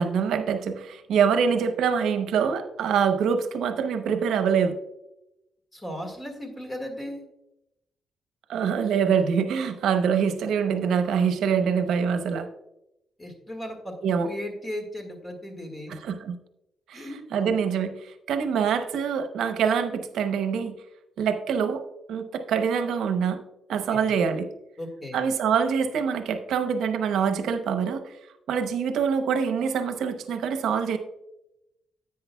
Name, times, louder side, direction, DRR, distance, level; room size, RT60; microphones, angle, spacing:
voice 1, 0.0-4.8 8.5-12.5 14.0-14.3 15.9-16.3 16.9-20.7 21.2-21.8 22.1-23.4 23.7-24.5 25.1-28.0 28.5-31.0, right 6 dB, 85° right, 8 dB, 0.7 m, -25 dB
voice 2, 5.7-7.2 13.2-13.9 14.3-16.0 16.9-17.5 23.9-24.0 24.8-25.2, left 1 dB, 20° left, 3 dB, 1.7 m, -36 dB
10.5 x 8.5 x 2.2 m, 0.86 s
cardioid pair, 140°, 0 cm